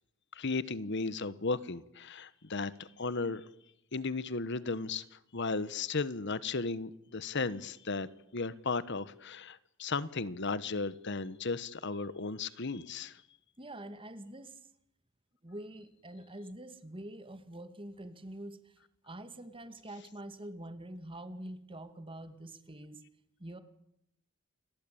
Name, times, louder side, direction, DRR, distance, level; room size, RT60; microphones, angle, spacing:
voice 1, 0.3-3.5 3.9-13.2, left 3 dB, 60° left, 17 dB, 1.1 m, -35 dB
voice 2, 13.6-14.7 15.4-18.8 19.0-23.0 23.4-23.6, right 1 dB, 25° right, 10 dB, 2.3 m, -45 dB
29.0 x 21.5 x 8.7 m, 0.78 s
head